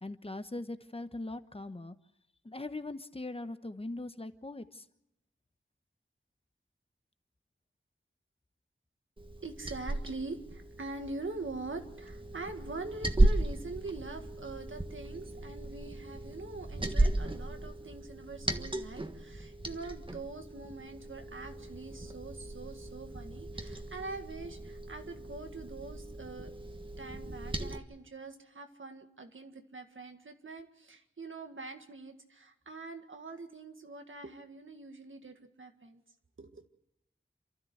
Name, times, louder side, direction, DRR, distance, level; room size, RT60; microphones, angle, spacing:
voice 1, 0.0-2.0 2.4-4.8, left 2 dB, 30° left, 10 dB, 1.1 m, -40 dB
Liquid, 9.2-27.8, right 2 dB, 25° right, 1.5 m, -35 dB
voice 2, 9.4-26.5 27.0-36.0 36.4-36.6, right 3 dB, 85° right, 5 dB, 2.0 m, -44 dB
28.5 x 13.0 x 8.0 m, 0.85 s
wide cardioid pair, 70°, 20 cm